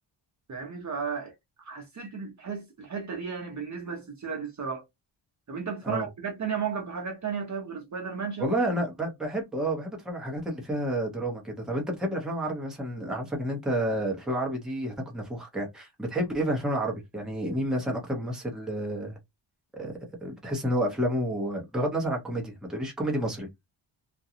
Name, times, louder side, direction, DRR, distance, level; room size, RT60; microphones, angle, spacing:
voice 1, 0.5-4.8 5.5-8.6, right 6 dB, 35° right, 0.7 m, -34 dB
voice 2, 8.4-19.2 19.7-19.9 20.2-23.5, right 1 dB, ahead, 0.8 m, -30 dB
2.5 x 2.2 x 2.8 m
wide cardioid pair, 150°, 49 cm